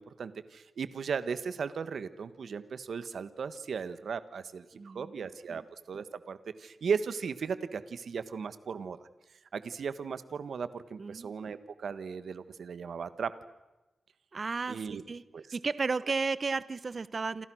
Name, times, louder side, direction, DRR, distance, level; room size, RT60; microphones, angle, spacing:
voice 1, 0.0-5.6 5.9-9.0 9.5-13.3 14.7-15.0 15.3-15.5, right 6 dB, 75° right, 13 dB, 1.5 m, -36 dB
voice 2, 4.7-5.2 5.5-5.6 11.0-11.3 14.3-15.2 15.5-17.5, right 4 dB, 45° right, 16 dB, 0.9 m, -33 dB
28.5 x 27.0 x 6.4 m, 1.1 s
wide cardioid pair, 100°, 0 cm